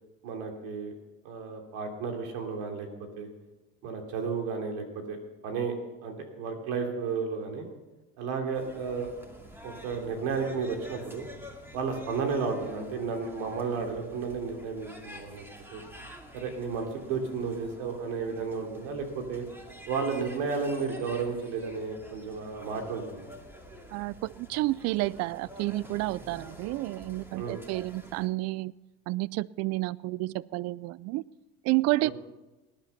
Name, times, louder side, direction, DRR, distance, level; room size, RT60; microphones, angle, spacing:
voice 1, 0.2-0.9 1.2-2.9 3.2-3.3 3.8-5.2 5.4-5.7 6.0-7.7 8.2-9.1 9.6-11.3 11.7-15.4 15.7-15.8 16.3-19.4 19.9-23.3 27.3-27.6 32.0-32.1, right 5 dB, 75° right, 3 dB, 3.1 m, -33 dB
sound 1, 8.5-28.3, equal, 10° right, 2.4 m, -48 dB
voice 2, 23.9-28.7 29.1-31.2 31.6-32.1, right 19 dB, 60° right, 23 dB, 0.4 m, -30 dB
19.0 x 10.5 x 5.8 m, 1.1 s
supercardioid pair, 105°, 29 cm